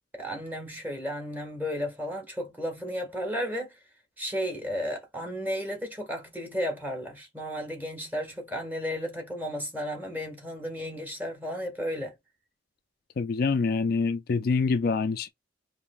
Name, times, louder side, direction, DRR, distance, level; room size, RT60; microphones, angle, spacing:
voice 1, 0.1-3.8 4.2-12.1, equal, 10° right, 1.5 m, -33 dB
voice 2, 13.2-15.3, left 4 dB, 55° left, 0.4 m, -25 dB
5.5 x 2.8 x 2.3 m
head